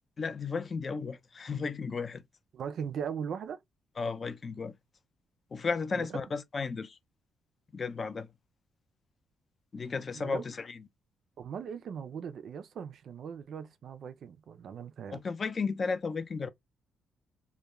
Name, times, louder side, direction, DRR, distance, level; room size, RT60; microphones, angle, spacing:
voice 1, 0.2-2.2 4.0-4.7 5.5-7.0 7.7-8.3 9.7-10.8 15.1-16.5, left 4 dB, 40° left, 0.4 m, -34 dB
voice 2, 2.5-3.6 5.9-6.2 10.1-10.4 11.4-15.2, right 7 dB, 60° right, 0.4 m, -39 dB
2.3 x 2.1 x 2.9 m
cardioid pair, 90°, 0 cm